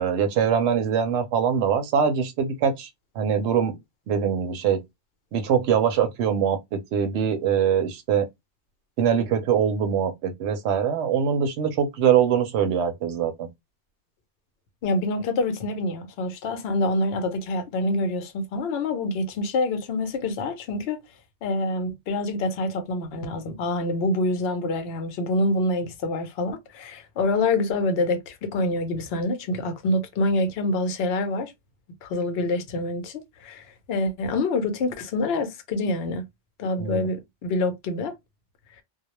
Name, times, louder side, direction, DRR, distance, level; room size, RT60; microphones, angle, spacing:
voice 1, 0.0-2.9 3.2-3.8 4.1-4.8 5.3-8.3 9.0-13.5 36.8-37.1, right 7 dB, 75° right, 0.9 m, -23 dB
voice 2, 14.8-21.0 21.4-31.5 32.0-36.2 36.6-38.1, left 2 dB, 65° left, 0.8 m, -26 dB
2.3 x 2.1 x 2.8 m
omnidirectional pair, 1.2 m